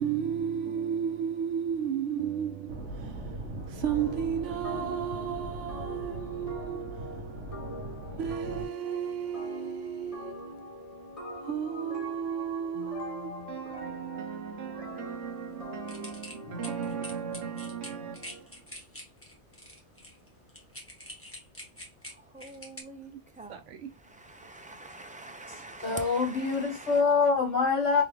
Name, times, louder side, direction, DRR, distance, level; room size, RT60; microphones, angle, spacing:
voice 1, 0.0-7.4 8.2-10.7 11.4-18.5 23.5-23.9, right 8 dB, 85° right, 1.0 m, -34 dB
sound 1, 2.7-8.6, right 1 dB, 65° right, 1.5 m, -40 dB
sound 2, 3.9-18.5, equal, 30° left, 0.9 m, -43 dB
sound 3, 15.9-22.8, left 1 dB, 10° left, 1.2 m, -45 dB
voice 2, 22.3-23.6 24.0-27.0, right 2 dB, 10° right, 0.4 m, -45 dB
voice 3, 25.8-28.0, left 5 dB, 75° left, 1.6 m, -25 dB
3.7 x 3.4 x 3.2 m
omnidirectional pair, 1.2 m